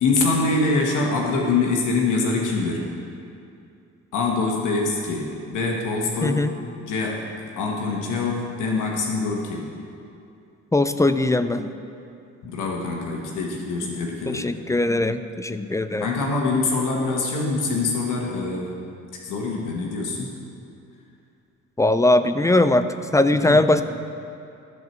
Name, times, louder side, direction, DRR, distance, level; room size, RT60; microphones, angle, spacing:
voice 1, 0.0-2.9 4.1-6.4 6.8-7.3 7.6-9.7 12.4-14.4 16.0-18.7 19.1-20.4 23.3-23.6, left 3 dB, 85° left, -1 dB, 1.3 m, -24 dB
voice 2, 6.2-6.5 10.7-11.7 14.3-16.1 21.8-23.8, left 2 dB, 10° left, 11 dB, 0.4 m, -20 dB
13.5 x 4.6 x 6.6 m, 2.6 s
cardioid pair, 90°, 30 cm